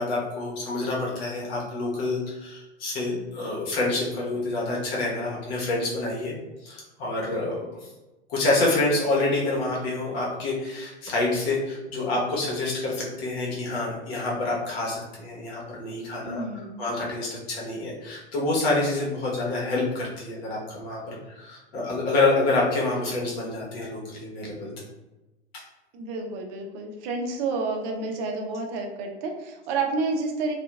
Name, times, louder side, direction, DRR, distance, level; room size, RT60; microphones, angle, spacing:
voice 1, 0.0-6.3 6.6-7.7 8.3-16.4 16.8-24.7, left 2 dB, 55° left, -3 dB, 1.1 m, -27 dB
voice 2, 16.2-16.8 25.9-30.5, right 3 dB, 40° right, 3 dB, 0.6 m, -30 dB
2.8 x 2.4 x 2.3 m, 1.0 s
figure-of-eight pair, 95°, 35 cm